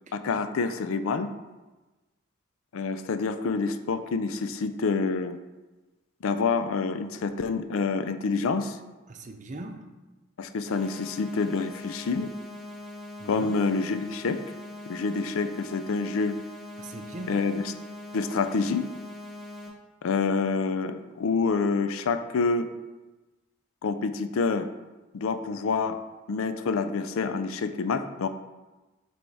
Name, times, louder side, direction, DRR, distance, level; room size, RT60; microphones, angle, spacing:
voice 1, 0.1-1.3 2.7-5.4 6.2-8.8 10.4-12.3 13.3-14.4 14.9-16.4 17.3-17.7 18.1-18.9 20.0-22.7 23.8-24.7 25.1-26.0 26.3-28.3, left 4 dB, 80° left, 10 dB, 0.4 m, -27 dB
voice 2, 9.1-10.0 13.2-13.6 16.8-17.5, right 2 dB, 35° right, 5 dB, 0.5 m, -40 dB
sound 1, 10.7-19.7, left 2 dB, ahead, 1.0 m, -42 dB
7.5 x 3.5 x 4.1 m, 1.2 s
head